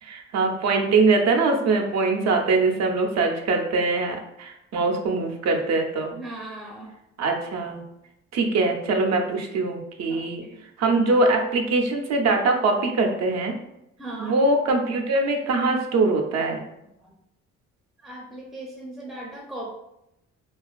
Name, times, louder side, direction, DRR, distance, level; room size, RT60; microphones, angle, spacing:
voice 1, 0.0-6.2 7.2-7.8 8.3-10.4 10.8-13.5 14.2-16.6, right 3 dB, 60° right, 3 dB, 0.5 m, -22 dB
voice 2, 6.1-6.9 10.1-10.6 14.0-14.4 17.0-17.2 18.0-19.7, right 1 dB, ahead, -4 dB, 0.5 m, -38 dB
2.4 x 2.3 x 2.3 m, 0.83 s
cardioid pair, 90°, 30 cm